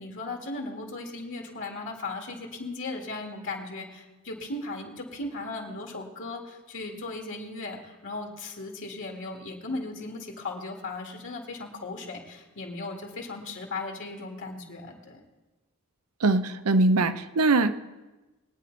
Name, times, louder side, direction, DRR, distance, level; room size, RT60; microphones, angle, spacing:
voice 1, 0.0-15.2, left 3 dB, 60° left, 2.0 m, -37 dB
voice 2, 16.2-17.7, right 2 dB, 80° right, 0.8 m, -22 dB
22.0 x 9.4 x 4.0 m
head